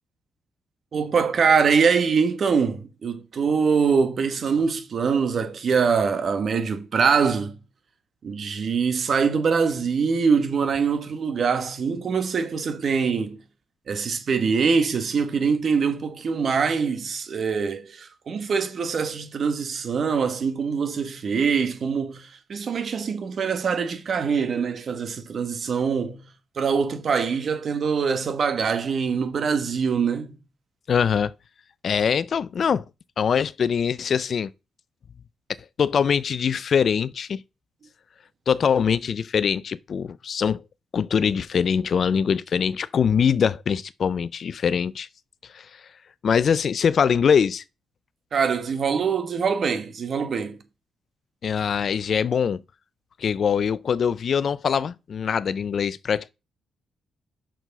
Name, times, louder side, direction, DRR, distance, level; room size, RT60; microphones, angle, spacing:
voice 1, 0.9-7.6 8.2-13.4 13.9-26.3 26.5-30.3 48.3-50.6, right 5 dB, 55° right, 1.6 m, -23 dB
voice 2, 30.9-31.3 31.8-32.8 33.2-34.5 35.8-37.4 38.5-40.6 40.9-45.1 45.5-45.7 46.2-47.6 51.4-52.6 53.2-56.3, left 7 dB, 60° left, 0.5 m, -23 dB
6.3 x 6.0 x 5.5 m
supercardioid pair, 60°, 0 cm